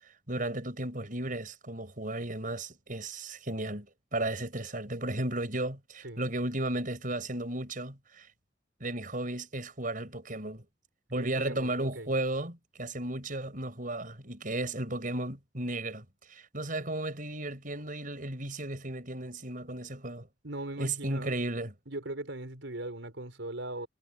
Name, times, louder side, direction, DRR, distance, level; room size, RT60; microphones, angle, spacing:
voice 1, 0.0-8.3 8.8-10.7 11.1-20.3 20.8-21.7, right 1 dB, 45° right, 6.0 m, -34 dB
voice 2, 11.2-12.1 20.4-21.4 21.9-23.9, right 2 dB, 90° right, 4.6 m, -39 dB
head